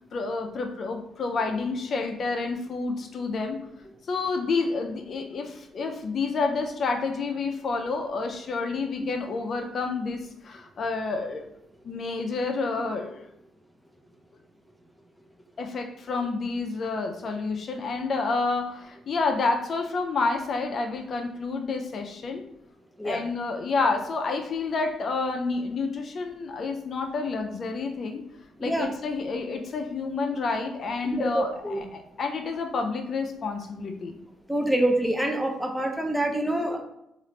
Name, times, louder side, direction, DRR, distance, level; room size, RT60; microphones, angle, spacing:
voice 1, 0.1-3.6 4.1-11.5 11.8-13.3 15.6-22.4 23.0-28.2 28.6-34.2, left 3 dB, 55° left, 4 dB, 0.4 m, -29 dB
voice 2, 31.0-31.8 34.5-36.8, right 1 dB, 5° right, 2 dB, 0.5 m, -26 dB
2.8 x 2.4 x 3.1 m, 0.80 s
cardioid pair, 90°, 0 cm